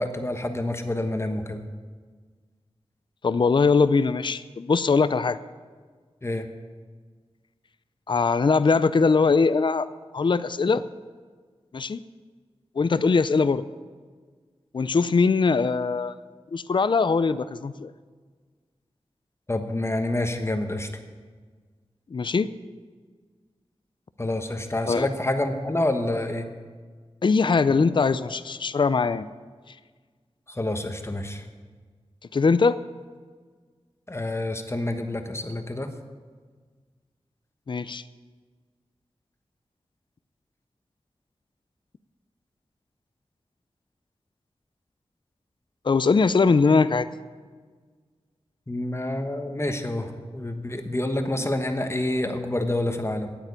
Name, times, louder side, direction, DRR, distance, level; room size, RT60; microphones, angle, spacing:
voice 1, 0.0-1.6 6.2-6.4 19.5-20.9 24.2-26.5 30.5-31.5 34.1-35.9 48.7-53.4, left 1 dB, 25° left, 6 dB, 1.2 m, -28 dB
voice 2, 3.2-5.4 8.1-9.9 10.1-10.9 11.7-12.0 12.8-13.6 14.7-16.2 16.5-17.9 22.1-22.5 24.9-25.1 27.2-29.3 29.7-29.8 32.3-32.8 37.7-38.0 45.8-47.1, left 4 dB, 50° left, 14 dB, 0.4 m, -21 dB
9.1 x 8.8 x 9.6 m, 1.5 s
wide cardioid pair, 80°, 11 cm